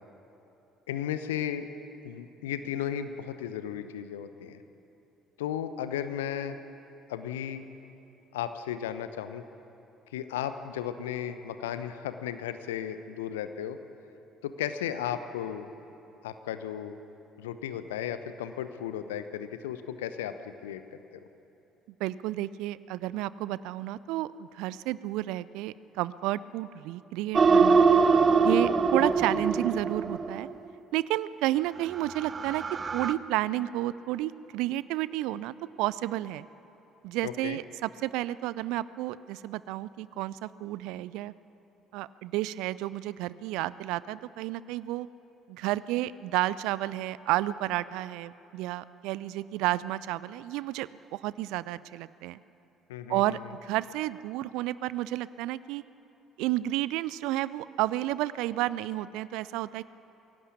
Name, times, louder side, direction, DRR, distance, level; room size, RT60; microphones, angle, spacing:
voice 1, 0.9-1.7 2.0-4.6 5.4-6.6 7.1-7.6 8.3-9.4 10.1-13.8 14.4-15.7 16.2-17.0 17.4-21.2 37.2-37.6 52.9-53.2, left 10 dB, 70° left, 11 dB, 0.9 m, -35 dB
voice 2, 22.0-27.9 28.4-30.5 30.9-32.6 32.9-36.5 37.0-41.3 41.9-45.1 45.5-52.4 53.1-55.8 56.4-59.8, right 15 dB, 60° right, 18 dB, 0.4 m, -31 dB
sound 1, 27.3-30.5 32.0-33.1, right 5 dB, 30° right, 0.9 m, -23 dB
23.0 x 16.5 x 8.5 m, 2.9 s
figure-of-eight pair, 50°, 0 cm